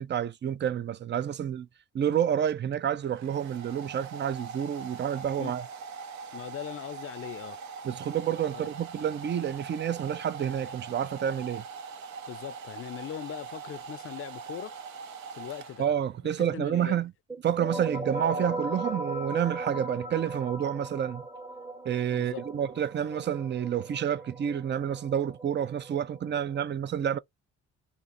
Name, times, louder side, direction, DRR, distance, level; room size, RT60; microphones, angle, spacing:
voice 1, 0.0-1.7 1.9-5.6 7.8-11.6 15.8-17.1 17.4-21.2 21.8-27.2, right 9 dB, 35° right, 0.5 m, -29 dB
Domestic sounds home sounds, 2.5-16.2, right 5 dB, 70° right, 0.8 m, -42 dB
voice 2, 6.3-7.6 8.5-8.7 12.3-14.7 15.4-15.8 16.2-17.0 22.1-22.5, left 11 dB, 45° left, 0.5 m, -40 dB
sound 1, 17.3-26.7, right 2 dB, 15° right, 1.0 m, -38 dB
2.6 x 2.5 x 4.2 m
cardioid pair, 90°, 30 cm